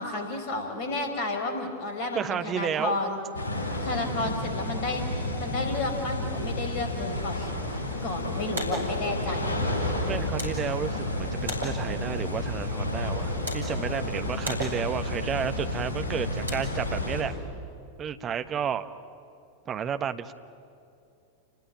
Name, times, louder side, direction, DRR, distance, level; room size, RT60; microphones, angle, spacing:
voice 1, 0.0-3.2 3.8-7.5 8.0-9.7, left 2 dB, 45° left, 5 dB, 4.9 m, -32 dB
voice 2, 2.1-3.0 4.2-4.3 10.1-17.3 18.0-18.9 19.7-20.3, right 8 dB, 25° right, 10 dB, 1.2 m, -31 dB
sound 1, 3.3-17.2, left 1 dB, 70° left, 7.4 m, -31 dB
sound 2, 8.3-17.3, equal, 75° right, 5.4 m, -40 dB
30.0 x 20.0 x 9.9 m, 2.6 s
figure-of-eight pair, 90°, 0 cm